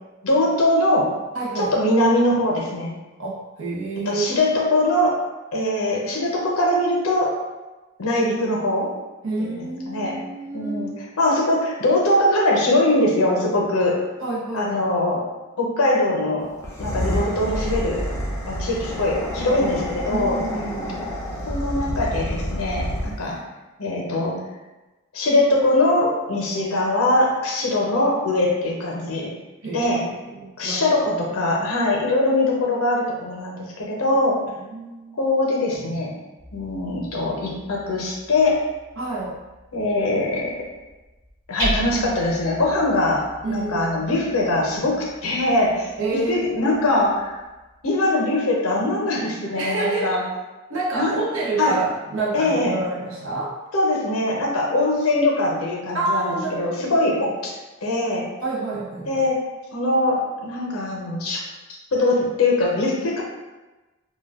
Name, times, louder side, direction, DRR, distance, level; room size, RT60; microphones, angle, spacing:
voice 1, 0.2-1.1 1.6-2.9 4.1-5.2 5.5-7.3 8.0-8.9 9.4-10.2 10.5-14.0 14.5-15.3 15.6-16.5 16.8-18.0 18.5-20.4 21.4-23.4 23.8-24.4 25.1-29.3 29.7-30.0 30.6-34.4 35.2-36.1 36.5-38.6 39.7-40.7 41.5-47.4 47.8-50.2 50.9-51.2 51.6-51.8 52.3-52.8 53.7-57.5 57.8-58.3 59.1-59.4 59.7-61.4 61.9-63.2, left 1 dB, 80° left, -2 dB, 0.7 m, -22 dB
voice 2, 1.3-1.8 3.2-4.2 9.2-11.1 14.2-14.9 20.1-21.0 29.6-29.9 30.2-31.2 34.6-35.2 39.0-39.4 43.4-44.1 46.0-46.5 49.5-50.1 50.7-53.6 55.9-57.0 58.4-59.3, right 3 dB, 65° right, -4 dB, 0.7 m, -28 dB
sound 1, 16.6-23.3, left 1 dB, 15° left, 0.3 m, -28 dB
Hammer, 36.4-48.1, equal, 15° right, 1.1 m, -37 dB
2.2 x 2.2 x 3.5 m, 1.1 s
head